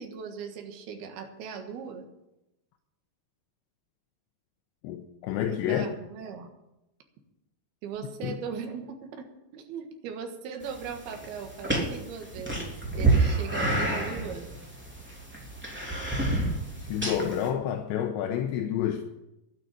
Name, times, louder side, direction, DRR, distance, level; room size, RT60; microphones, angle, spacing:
voice 1, 0.0-2.1 5.4-6.5 7.8-9.3 9.5-14.5, right 6 dB, 65° right, 3.2 m, -39 dB
voice 2, 4.8-5.9 8.2-8.4 16.9-19.0, left 10 dB, 80° left, 3.0 m, -29 dB
sound 1, 10.6-17.5, right 2 dB, 5° right, 2.1 m, -29 dB
12.0 x 9.6 x 8.7 m
omnidirectional pair, 5.4 m